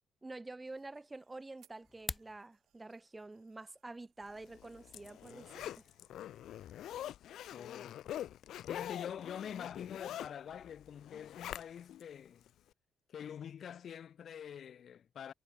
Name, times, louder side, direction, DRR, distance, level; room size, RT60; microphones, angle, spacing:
voice 1, 0.2-5.9, right 2 dB, 20° right, 1.0 m, -48 dB
sound 1, 0.6-7.1, right 13 dB, 80° right, 4.7 m, -74 dB
sound 2, 1.8-2.4, left 3 dB, 25° left, 0.7 m, -41 dB
Zipper (clothing), 4.4-12.0 12.5-12.6, left 12 dB, 75° left, 0.9 m, -45 dB
voice 2, 7.5-8.0 8.7-12.5 13.1-15.3, left 8 dB, 60° left, 1.3 m, -45 dB
cardioid pair, 90°, 0 cm